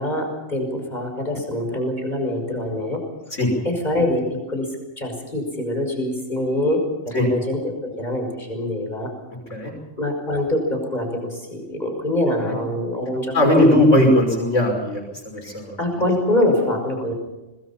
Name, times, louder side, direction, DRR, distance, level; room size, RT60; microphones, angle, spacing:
voice 1, 0.0-3.0 3.6-4.7 5.0-9.1 10.0-13.8 15.4-15.5 15.8-17.1, left 1 dB, 35° left, 3 dB, 5.9 m, -24 dB
voice 2, 13.3-15.8, left 1 dB, 90° left, 1 dB, 6.1 m, -18 dB
26.0 x 20.5 x 5.8 m, 1.0 s
omnidirectional pair, 1.2 m